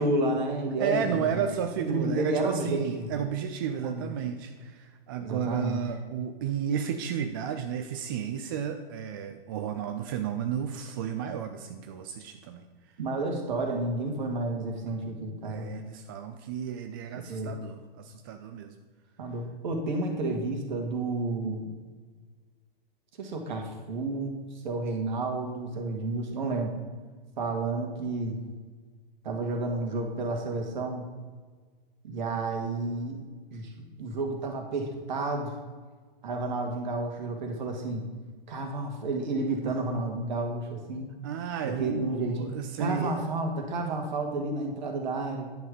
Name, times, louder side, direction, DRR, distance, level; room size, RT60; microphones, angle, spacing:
voice 1, 0.0-1.5 1.8-3.2 3.7-4.3 5.2-5.8 13.0-15.7 17.1-17.5 19.2-21.7 23.2-26.7 27.4-28.4 29.2-31.1 32.0-33.2 33.5-33.7 34.0-35.6 36.2-38.1 38.5-41.1 41.6-42.5 42.8-45.5, right 2 dB, 50° right, 3 dB, 2.0 m, -31 dB
voice 2, 0.8-12.6 15.4-18.7 41.2-43.3, right 8 dB, 25° right, 7 dB, 0.4 m, -33 dB
10.0 x 6.4 x 5.1 m, 1.4 s
figure-of-eight pair, 110°, 29 cm